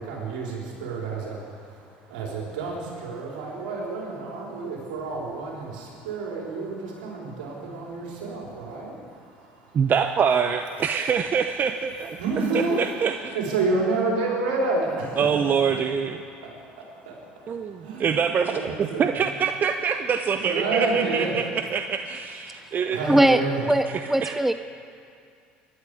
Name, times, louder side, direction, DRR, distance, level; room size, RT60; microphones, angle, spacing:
voice 1, 0.0-9.8 12.2-12.8 13.3-15.3 16.4-19.2 20.3-21.3 22.5-23.7, right 3 dB, 80° right, -3 dB, 4.3 m, -30 dB
voice 2, 9.7-12.2 12.5-13.3 15.2-16.2 17.5-23.0 24.2-24.4, right 6 dB, 40° right, 7 dB, 0.8 m, -25 dB
voice 3, 23.0-24.5, right 1 dB, 5° right, 11 dB, 0.6 m, -21 dB
23.0 x 12.0 x 5.0 m, 2.4 s
hypercardioid pair, 70°, 5 cm